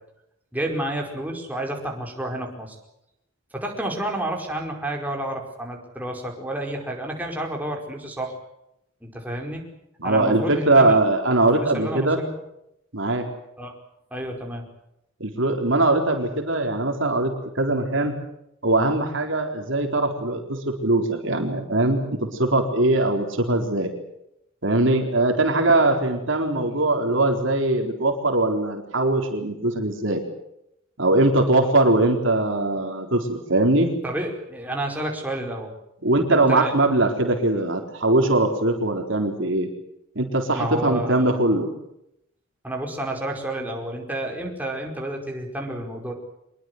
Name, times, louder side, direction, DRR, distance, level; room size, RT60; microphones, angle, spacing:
voice 1, 0.5-2.8 3.5-8.3 9.0-9.6 10.0-11.0 11.5-12.2 13.6-13.7 14.1-14.7 34.0-35.7 36.3-36.7 40.5-41.3 42.6-46.1, right 1 dB, 10° right, 1 dB, 5.0 m, -30 dB
voice 2, 10.0-12.2 12.9-13.3 15.2-18.1 18.6-23.9 24.6-30.2 31.0-33.9 36.0-39.7 40.2-41.7, right 2 dB, 65° right, 3 dB, 4.1 m, -21 dB
25.0 x 22.0 x 8.0 m, 0.81 s
head